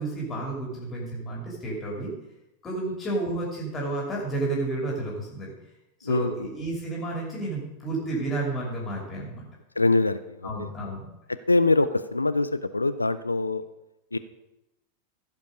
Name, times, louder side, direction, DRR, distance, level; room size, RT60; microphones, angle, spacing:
voice 1, 0.0-2.1 2.6-5.5 6.0-9.4 10.4-11.1, right 2 dB, 20° left, -3 dB, 2.9 m, -31 dB
voice 2, 6.0-6.5 9.8-10.5 11.5-13.6 14.1-14.2, left 3 dB, 80° left, 14 dB, 0.4 m, -23 dB
15.5 x 5.3 x 5.1 m, 0.90 s
figure-of-eight pair, 90°, 0 cm